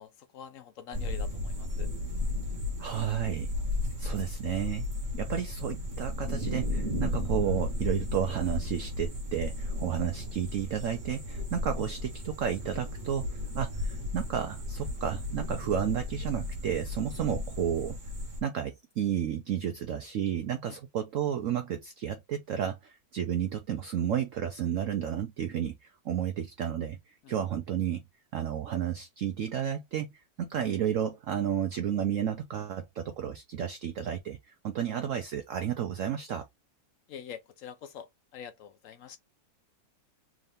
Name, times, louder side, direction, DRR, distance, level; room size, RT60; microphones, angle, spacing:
voice 1, 0.0-1.9 20.7-20.8 27.2-27.3 37.1-39.2, left 8 dB, 70° left, 0.7 m, -45 dB
sound 1, 0.9-18.4, left 1 dB, 35° right, 0.9 m, -34 dB
voice 2, 2.8-3.5 4.0-4.9 5.1-18.0 18.4-28.0 28.3-36.5, right 9 dB, 85° right, 0.6 m, -32 dB
3.7 x 2.6 x 3.3 m
omnidirectional pair, 2.0 m